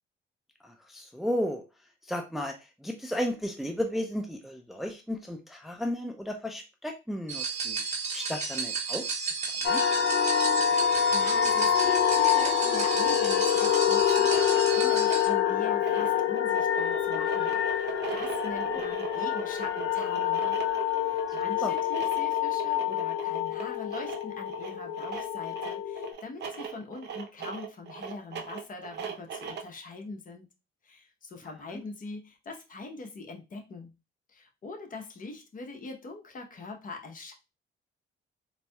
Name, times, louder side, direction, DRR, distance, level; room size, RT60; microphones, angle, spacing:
voice 1, 0.9-1.6 2.1-2.5 2.8-7.8 8.1-9.0 9.7-9.8 18.7-18.8 21.6-21.7, equal, ahead, 3 dB, 0.5 m, -33 dB
sound 1, 7.3-15.3, right 4 dB, 35° right, 1.4 m, -33 dB
sound 2, 9.6-26.1, left 9 dB, 70° left, 0.6 m, -26 dB
voice 2, 11.1-20.6 21.0-30.5 30.8-34.0 34.3-37.3, left 3 dB, 45° left, 3 dB, 0.9 m, -42 dB
sound 3, 14.1-29.8, right 6 dB, 60° right, 0.7 m, -39 dB
3.9 x 2.7 x 2.3 m, 0.26 s
cardioid pair, 90°, 20 cm